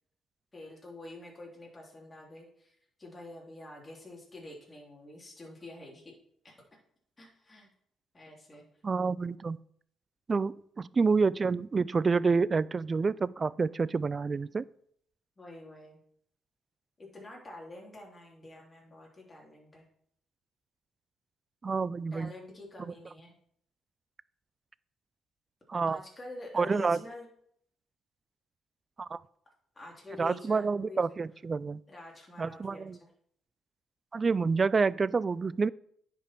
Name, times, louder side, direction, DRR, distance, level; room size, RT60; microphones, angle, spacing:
voice 1, 0.5-6.1 6.4-6.5 7.2-7.7 8.1-8.6 15.4-16.0 17.0-19.9 22.1-23.3 25.9-27.3 29.7-31.1 31.9-33.1, left 2 dB, 25° left, -2 dB, 3.0 m, -47 dB
voice 2, 8.8-9.6 10.3-14.7 21.6-22.3 25.7-26.0 26.5-27.0 29.0-29.2 30.2-31.8 32.4-33.0 34.1-35.7, right 4 dB, 35° right, 20 dB, 0.3 m, -28 dB
9.9 x 5.3 x 4.5 m, 0.68 s
supercardioid pair, 70°, 0 cm